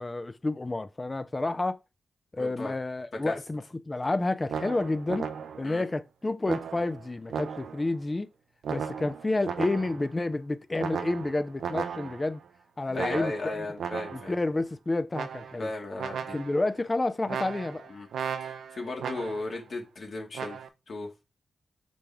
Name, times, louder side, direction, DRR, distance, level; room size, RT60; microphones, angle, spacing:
voice 1, 0.0-1.8 2.3-5.3 5.6-8.3 8.7-12.4 12.8-13.7 14.1-15.7 16.3-17.9, left 2 dB, 25° left, 0.5 m, -30 dB
voice 2, 2.4-2.7 3.2-3.4 5.6-5.8 12.9-14.3 15.6-16.4 17.9-18.1 18.4-20.6 20.9-21.1, left 2 dB, 55° left, 2.0 m, -35 dB
sound 1, 4.5-5.8 6.5-7.9 8.6-10.1 10.8-12.4 12.9-14.4 15.1-15.7 16.0-16.7 17.3-19.6 20.3-20.7, right 7 dB, 85° right, 0.6 m, -36 dB
5.7 x 5.1 x 3.5 m
cardioid pair, 70°, 0 cm